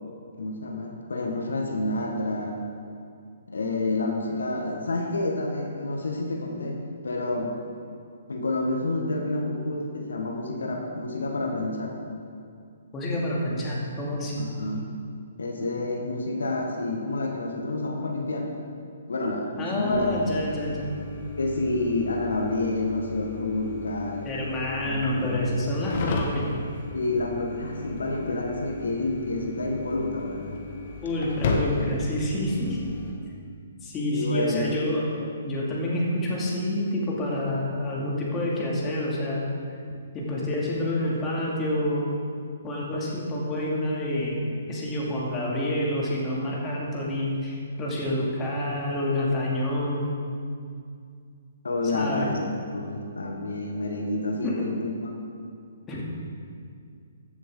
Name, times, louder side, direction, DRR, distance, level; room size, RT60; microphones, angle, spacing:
voice 1, 0.4-2.6 3.5-7.5 8.3-12.0 14.4-14.8 15.4-18.5 19.1-20.1 21.4-24.3 24.8-25.3 26.9-30.6 34.1-34.8 51.6-52.4 52.7-54.9, left 2 dB, 80° left, 1 dB, 1.4 m, -29 dB
voice 2, 12.9-14.4 19.6-20.9 24.2-26.5 31.0-32.8 33.8-39.4 40.1-42.1 42.6-44.4 44.7-50.2 51.9-52.3 54.4-54.6 55.9-56.0, left 1 dB, 20° left, -4 dB, 2.3 m, -28 dB
sound 1, 19.9-33.1, left 3 dB, 50° left, 1.4 m, -34 dB
14.5 x 6.9 x 3.8 m, 2.3 s
hypercardioid pair, 135°, 0 cm